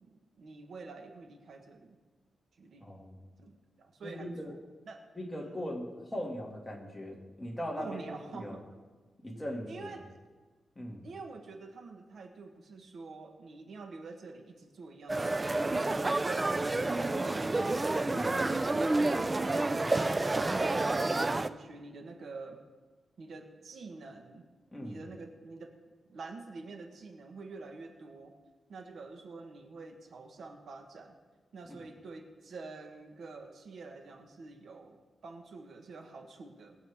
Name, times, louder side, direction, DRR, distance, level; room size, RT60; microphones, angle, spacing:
voice 1, 0.0-2.0 2.6-2.9 3.4-4.6 4.9-5.0 5.4-5.6 7.8-8.6 9.7-10.2 11.0-17.9 18.2-20.0 20.5-22.6 23.2-24.4 24.8-25.7 26.1-28.3 28.7-31.2 31.5-36.8, right 3 dB, 65° right, 4 dB, 1.4 m, -47 dB
voice 2, 2.8-3.3 4.0-4.5 5.1-8.0 8.3-8.6 9.2-10.0 10.8-11.1 18.1-18.3 24.7-25.0 31.7-31.9, equal, 10° left, -2 dB, 2.4 m, -39 dB
sound 1, 15.1-21.5, right 2 dB, 20° right, 0.4 m, -29 dB
21.0 x 8.1 x 3.6 m, 1.3 s
wide cardioid pair, 130°, 0 cm